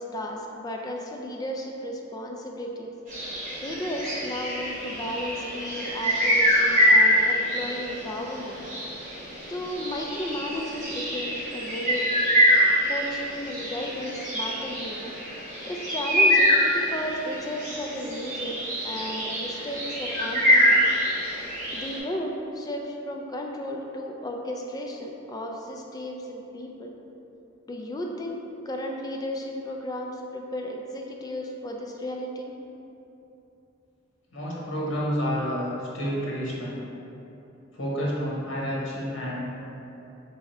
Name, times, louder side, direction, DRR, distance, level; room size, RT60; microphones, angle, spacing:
voice 1, 0.0-2.9 3.6-8.6 9.5-12.1 12.9-15.0 15.6-18.6 18.8-20.8 21.7-26.9 27.7-28.4 28.7-32.5, equal, 20° left, 1 dB, 0.3 m, -34 dB
sound 1, 3.1-22.0, equal, 40° right, 1.3 m, -25 dB
voice 2, 34.3-36.8 37.8-39.4, equal, 80° left, -5 dB, 1.1 m, -29 dB
3.5 x 3.4 x 4.3 m, 3.0 s
head